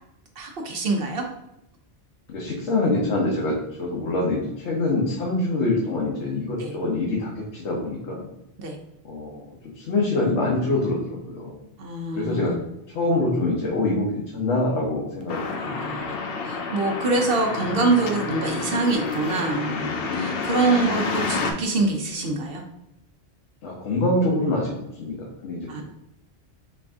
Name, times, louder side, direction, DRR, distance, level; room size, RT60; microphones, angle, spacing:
voice 1, 0.4-1.2 6.6-6.7 8.6-8.8 11.8-12.5 15.6-16.0 16.4-22.6 25.7-25.8, right 3 dB, 60° right, 2 dB, 0.8 m, -25 dB
voice 2, 2.3-8.3 9.1-9.5 9.7-11.6 12.1-12.6 12.9-15.7 23.6-24.7 25.0-25.8, left 2 dB, 85° left, -3 dB, 1.1 m, -25 dB
sound 1, 15.3-21.5, left 4 dB, 65° left, 0.7 m, -29 dB
4.7 x 2.5 x 3.4 m, 0.84 s
omnidirectional pair, 1.1 m